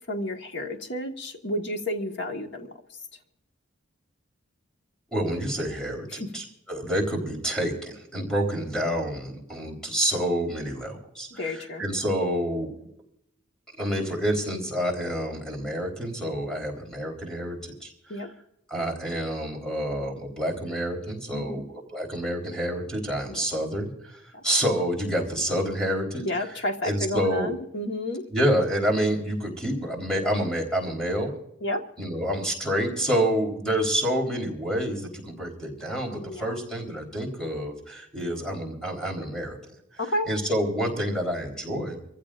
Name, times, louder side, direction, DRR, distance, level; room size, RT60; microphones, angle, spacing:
voice 1, 0.1-2.8 6.1-6.3 11.3-11.8 18.1-18.3 21.3-21.6 23.3-23.5 24.3-24.4 26.1-28.2 31.6-31.9 36.3-36.5 40.0-40.3, left 1 dB, 60° left, 4 dB, 1.6 m, -31 dB
voice 2, 5.1-11.3 11.8-12.7 13.8-17.9 18.7-23.9 24.4-26.2 26.8-27.5 28.3-31.3 32.0-39.6 40.3-42.0, equal, 5° left, 1 dB, 3.9 m, -28 dB
26.0 x 15.5 x 2.5 m, 0.79 s
head